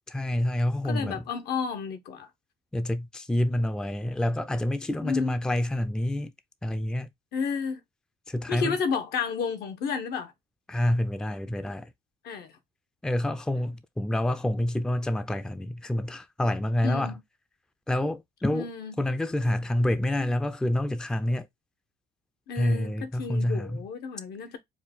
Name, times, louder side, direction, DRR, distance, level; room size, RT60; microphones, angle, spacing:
voice 1, 0.1-1.2 2.7-6.3 6.6-7.1 8.3-8.8 10.7-11.9 13.0-17.2 17.9-18.7 19.0-21.5 22.6-23.8, left 1 dB, 5° left, 0.4 m, -27 dB
voice 2, 0.8-2.3 5.0-5.3 7.3-7.8 8.5-10.3 12.2-12.5 16.8-17.1 18.5-18.9 22.5-24.6, left 5 dB, 70° left, 1.1 m, -31 dB
4.7 x 2.3 x 4.2 m
cardioid pair, 110°, 17 cm